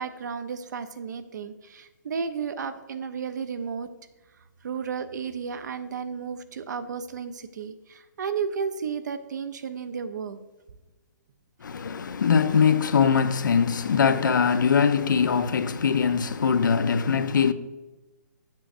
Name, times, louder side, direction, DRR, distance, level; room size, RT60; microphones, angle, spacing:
voice 1, 0.0-3.9 4.6-10.4, right 6 dB, 70° right, 0.5 m, -33 dB
voice 2, 11.6-17.5, left 6 dB, 85° left, 0.5 m, -22 dB
7.4 x 7.4 x 2.5 m
hypercardioid pair, 155°, 10 cm